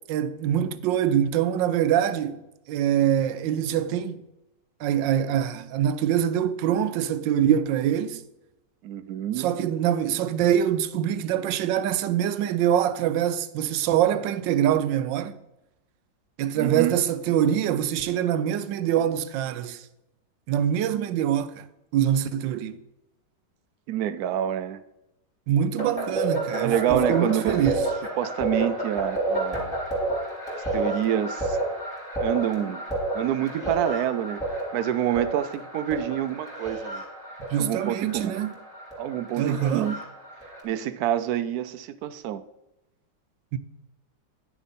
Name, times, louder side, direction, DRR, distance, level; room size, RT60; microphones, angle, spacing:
voice 1, 0.1-2.4 2.7-4.2 4.8-8.2 9.4-15.4 16.4-19.8 20.5-21.6 21.9-22.8 25.5-27.9 37.5-38.5 39.4-40.0 43.5-43.6, right 10 dB, 85° right, 1.3 m, -24 dB
voice 2, 8.8-9.5 16.6-17.0 23.9-24.8 26.6-27.6 28.2-29.7 30.7-31.6 32.2-32.8 33.1-37.0 37.6-38.4 39.0-40.0 40.6-42.4, right 11 dB, 70° right, 0.9 m, -27 dB
sound 1, 25.8-40.6, right 2 dB, 5° right, 3.3 m, -30 dB
10.5 x 7.0 x 4.1 m
omnidirectional pair, 1.9 m